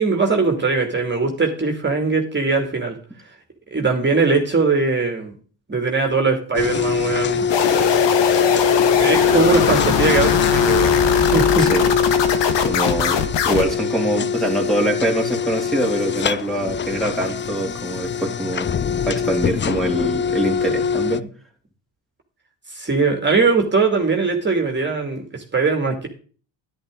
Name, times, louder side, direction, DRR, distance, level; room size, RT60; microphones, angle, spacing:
voice 1, 0.0-3.0 3.7-5.3 5.7-7.5 9.0-11.7 22.7-26.1, right 4 dB, 25° right, 3 dB, 2.6 m, -20 dB
sound 1, 6.5-21.2, left 6 dB, 25° left, 0.5 m, -22 dB
sound 2, 7.5-13.6, left 7 dB, 70° left, 1.7 m, -20 dB
voice 2, 11.6-11.9 12.6-18.7 19.0-21.2, right 1 dB, ahead, -1 dB, 3.0 m, -24 dB
10.5 x 10.5 x 3.8 m, 0.40 s
cardioid pair, 85°, 44 cm